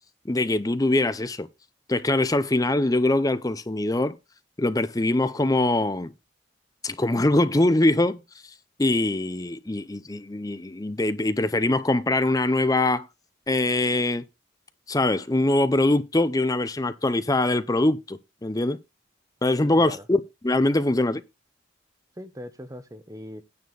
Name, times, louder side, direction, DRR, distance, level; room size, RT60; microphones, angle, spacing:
voice 1, 0.2-1.5 1.9-4.2 4.6-6.1 6.8-8.2 8.8-13.1 13.5-14.2 14.9-18.8 19.4-21.2, left 2 dB, 20° left, 0.6 m, -23 dB
voice 2, 19.6-20.1 22.2-23.4, equal, 15° right, 0.8 m, -40 dB
9.5 x 4.3 x 6.9 m
head